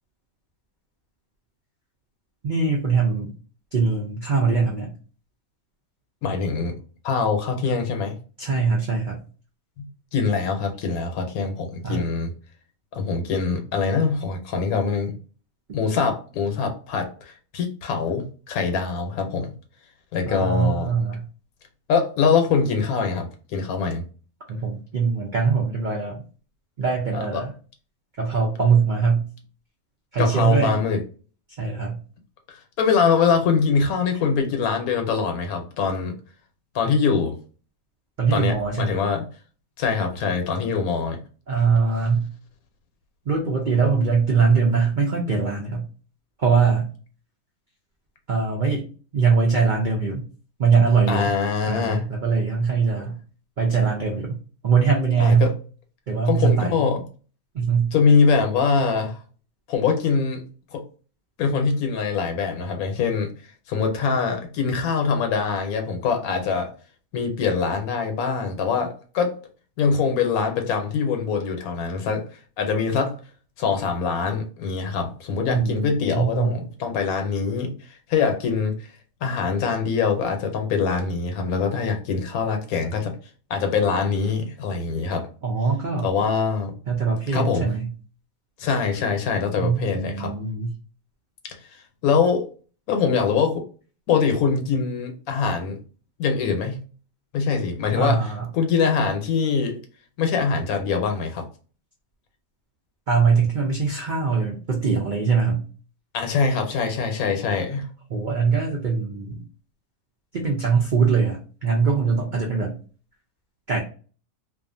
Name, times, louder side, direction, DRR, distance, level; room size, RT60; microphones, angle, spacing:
voice 1, 2.4-3.3 3.7-4.9 8.4-9.2 11.8-12.0 20.3-21.2 24.5-26.2 26.8-27.5 28.2-29.3 30.1-30.8 31.6-32.0 38.2-39.0 41.5-42.3 43.3-45.8 46.4-46.9 48.3-48.8 49.1-50.2 50.6-51.3 51.7-53.2 53.6-54.4 54.6-55.5 56.1-56.8 57.5-57.9 75.5-76.6 85.4-86.1 86.9-87.9 89.6-90.7 98.0-98.5 103.1-105.6 108.1-109.4 110.3-112.8 113.7-113.8, right 5 dB, 75° right, 0 dB, 0.4 m, -22 dB
voice 2, 6.2-6.7 7.0-8.2 9.8-9.9 10.1-12.3 12.9-15.1 15.7-19.5 20.1-20.9 21.9-24.0 27.1-27.4 30.2-31.0 32.8-36.1 36.7-37.3 38.3-39.2 39.8-41.2 51.1-52.0 53.0-53.1 55.2-55.5 56.3-57.0 57.9-59.2 59.7-60.4 60.7-60.8 61.4-63.3 63.7-66.7 67.1-69.4 69.8-72.2 72.6-73.2 73.6-78.7 79.2-83.1 83.5-85.3 86.0-86.7 87.3-87.7 88.6-90.3 91.4-91.6 92.0-92.5 92.9-93.6 94.1-95.8 96.2-96.8 97.3-99.8 100.2-101.4 106.1-107.9, left 5 dB, 80° left, 5 dB, 1.1 m, -23 dB
2.5 x 2.3 x 2.5 m, 0.38 s
omnidirectional pair, 1.5 m